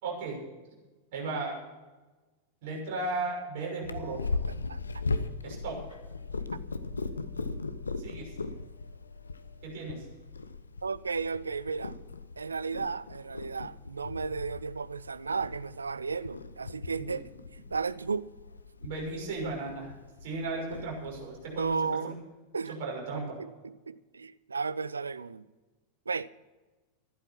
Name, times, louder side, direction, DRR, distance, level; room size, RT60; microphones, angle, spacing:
voice 1, 0.0-0.4 1.1-1.6 2.6-4.2 5.4-5.8 8.0-8.3 9.6-10.0 17.0-17.1 18.8-19.9 20.2-22.2 22.7-23.4, right 3 dB, 50° right, 6.3 m, -35 dB
Purr, 3.8-21.8, left 3 dB, 75° left, 0.8 m, -39 dB
voice 2, 10.8-12.0 12.4-18.3 21.6-22.2 22.5-22.8 23.4-25.5 26.1-26.3, right 5 dB, 75° right, 0.5 m, -34 dB
15.0 x 11.5 x 6.0 m
figure-of-eight pair, 90°, 0 cm